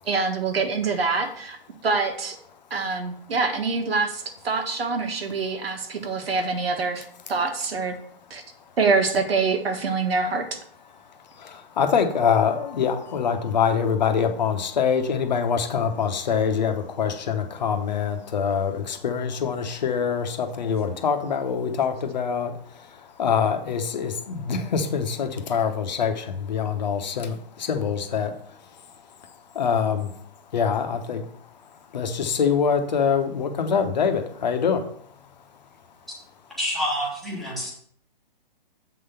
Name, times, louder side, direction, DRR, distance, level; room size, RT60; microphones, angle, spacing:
voice 1, 0.1-1.6 1.8-2.4 2.7-7.0 7.3-8.0 8.3-8.4 8.8-10.6, right 4 dB, 90° right, 5 dB, 1.7 m, -25 dB
voice 2, 11.4-28.3 29.5-30.1 30.5-31.2 31.9-34.8, left 6 dB, 50° left, 6 dB, 1.0 m, -24 dB
voice 3, 36.6-37.7, equal, ahead, -6 dB, 1.1 m, -27 dB
7.7 x 3.9 x 6.8 m, 0.62 s
hypercardioid pair, 170°, 29 cm